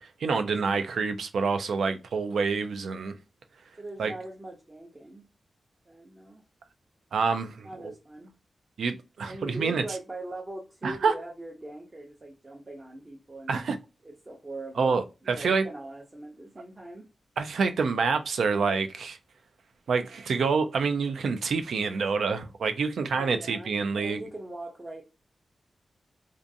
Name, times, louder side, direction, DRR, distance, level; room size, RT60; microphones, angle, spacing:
voice 1, 0.0-3.2 4.0-4.1 7.1-7.9 8.8-9.8 10.8-11.1 13.5-13.8 14.8-15.7 17.4-19.2 19.9-24.2, right 5 dB, 90° right, 0.3 m, -27 dB
voice 2, 3.8-5.2 5.9-6.4 7.6-8.3 9.3-13.6 14.0-15.0 15.3-17.1 23.1-25.0, right 2 dB, 30° right, 0.6 m, -41 dB
2.5 x 2.3 x 2.6 m
cardioid pair, 70°, 0 cm